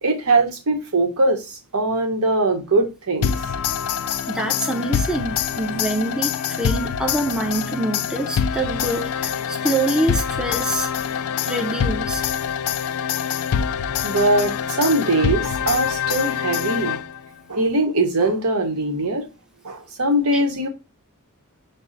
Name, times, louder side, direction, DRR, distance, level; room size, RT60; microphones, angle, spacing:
voice 1, 0.0-3.3 14.0-17.0 17.5-19.3 19.6-20.7, right 2 dB, 85° right, 0.9 m, -21 dB
sound 1, 3.2-17.3, left 8 dB, 85° left, 0.3 m, -25 dB
voice 2, 4.3-11.0 11.4-12.2, right 1 dB, 5° right, 0.5 m, -25 dB
5.3 x 2.0 x 3.8 m
head